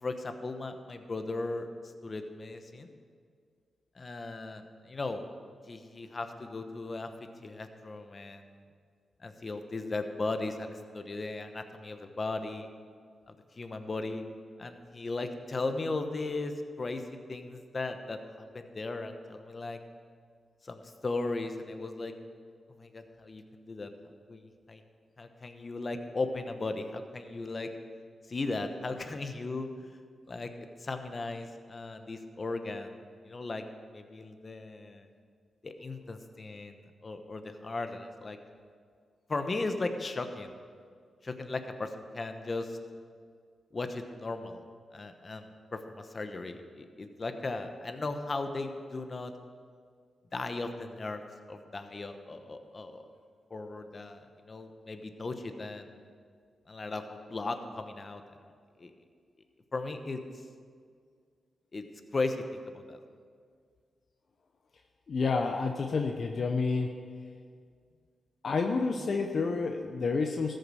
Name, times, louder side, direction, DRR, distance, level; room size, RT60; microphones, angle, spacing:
voice 1, 0.0-1.7 2.0-2.9 4.0-5.2 5.7-7.1 7.4-8.4 9.2-12.7 13.6-14.2 14.6-16.5 16.8-17.0 17.3-19.8 20.6-22.1 22.8-23.9 24.3-24.8 25.2-27.7 28.3-29.7 30.3-32.9 33.2-33.6 33.9-35.1 35.6-36.8 37.0-38.4 39.3-40.5 41.2-42.8 43.7-44.6 44.9-49.3 50.3-51.2 51.5-53.0 53.5-55.9 56.7-58.2 58.8-58.9 59.7-60.2 61.7-61.8 62.1-62.4 62.7-63.0, left 3 dB, 40° left, 7 dB, 1.0 m, -37 dB
voice 2, 65.1-66.9 68.4-70.5, left 4 dB, 60° left, 4 dB, 0.8 m, -29 dB
14.0 x 6.6 x 6.4 m, 2.1 s
cardioid pair, 60°, 0 cm